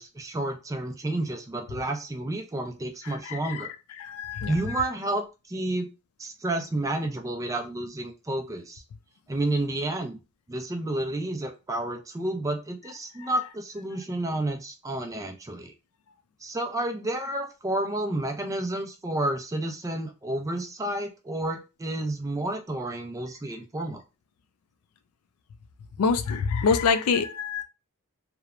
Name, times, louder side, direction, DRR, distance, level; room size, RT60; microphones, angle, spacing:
voice 1, 0.0-3.7 4.5-5.9 6.2-8.8 9.3-10.2 10.5-15.7 16.4-24.0, right 1 dB, 15° right, 0.3 m, -30 dB
voice 2, 3.3-3.6 4.0-4.8 26.0-27.6, left 5 dB, 75° left, 0.4 m, -26 dB
2.9 x 2.1 x 2.4 m
head